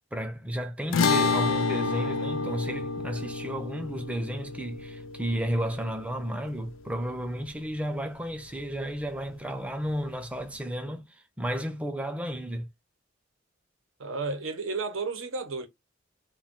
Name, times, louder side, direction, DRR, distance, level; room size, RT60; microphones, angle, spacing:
voice 1, 0.1-12.7, equal, 5° right, 0.4 m, -33 dB
sound 1, 0.9-7.4, left 4 dB, 80° left, 0.4 m, -30 dB
voice 2, 14.0-15.7, right 3 dB, 85° right, 0.8 m, -32 dB
2.4 x 2.2 x 3.6 m
head